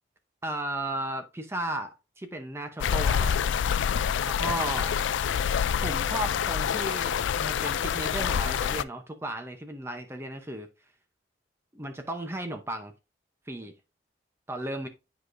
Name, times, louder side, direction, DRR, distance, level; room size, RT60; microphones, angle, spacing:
voice 1, 0.4-3.5 4.2-5.0 5.7-10.7 11.7-12.9 13.5-13.7 14.5-14.9, right 1 dB, 15° right, 0.7 m, -35 dB
sound 1, 2.8-8.8, left 8 dB, 75° left, 0.3 m, -27 dB
10.0 x 4.8 x 2.5 m
head